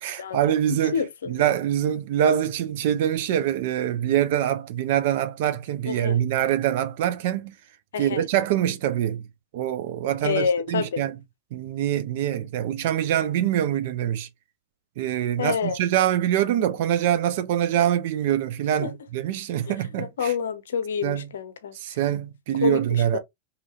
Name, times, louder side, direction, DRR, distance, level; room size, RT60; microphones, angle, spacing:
voice 1, 0.0-1.0 1.3-7.5 8.0-9.2 9.5-11.2 11.5-14.3 15.0-20.3 21.0-21.3 21.8-23.2, right 11 dB, 50° right, 0.5 m, -24 dB
voice 2, 0.7-1.3 5.9-6.2 7.9-8.2 10.2-11.0 15.4-15.8 18.8-18.9 19.7-21.8 22.6-23.2, left 7 dB, 65° left, 0.6 m, -28 dB
2.8 x 2.7 x 2.8 m
figure-of-eight pair, 90°, 0 cm